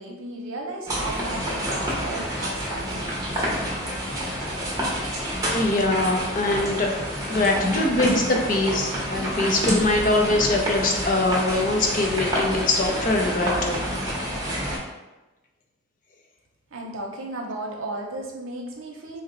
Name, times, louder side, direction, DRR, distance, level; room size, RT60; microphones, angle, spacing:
voice 1, 0.0-3.3 16.7-19.2, right 2 dB, 85° right, 0 dB, 0.7 m, -34 dB
sound 1, 0.9-14.8, equal, 15° right, 0.8 m, -28 dB
voice 2, 5.5-6.9 7.3-13.8, left 2 dB, 40° left, 1 dB, 0.5 m, -23 dB
3.9 x 2.1 x 3.8 m, 1.1 s
head